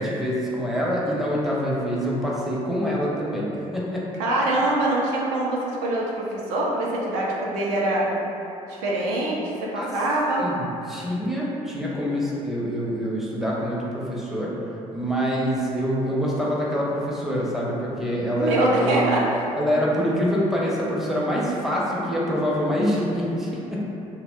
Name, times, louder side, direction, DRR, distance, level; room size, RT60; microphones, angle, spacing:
voice 1, 0.0-4.1 9.7-9.9 10.4-14.5 14.9-19.2 19.6-23.9, equal, ahead, -6 dB, 0.5 m, -25 dB
voice 2, 4.2-8.1 8.7-10.5 18.3-19.4, right 1 dB, 65° right, -4 dB, 0.4 m, -24 dB
2.8 x 2.0 x 2.5 m, 2.8 s
figure-of-eight pair, 50°, 18 cm